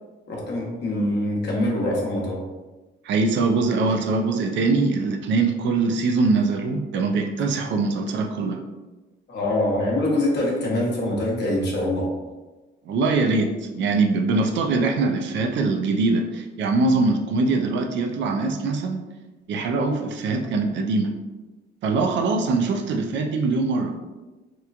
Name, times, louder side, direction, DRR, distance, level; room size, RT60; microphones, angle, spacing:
voice 1, 0.3-2.4 9.3-12.1, left 1 dB, 60° left, -2 dB, 0.8 m, -24 dB
voice 2, 3.0-8.6 12.9-19.1 19.5-21.1 21.8-24.0, right 3 dB, 70° right, 4 dB, 0.4 m, -22 dB
3.0 x 2.2 x 2.4 m, 1.2 s
cardioid pair, 90°, 20 cm